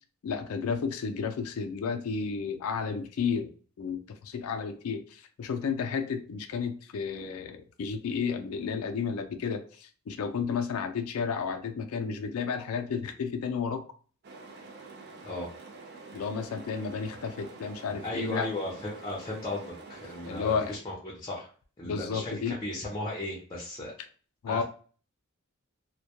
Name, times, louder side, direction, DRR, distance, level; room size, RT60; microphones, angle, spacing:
voice 1, 0.2-3.5 3.8-13.8 16.1-18.5 20.2-20.7 21.8-22.6 24.4-24.6, left 6 dB, 85° left, 5 dB, 0.4 m, -32 dB
sound 1, 14.2-20.8, right 3 dB, 50° right, 0.4 m, -47 dB
voice 2, 18.0-21.5 21.8-23.9 24.5-24.6, left 1 dB, 20° left, -3 dB, 0.6 m, -36 dB
2.1 x 2.1 x 2.8 m, 0.41 s
head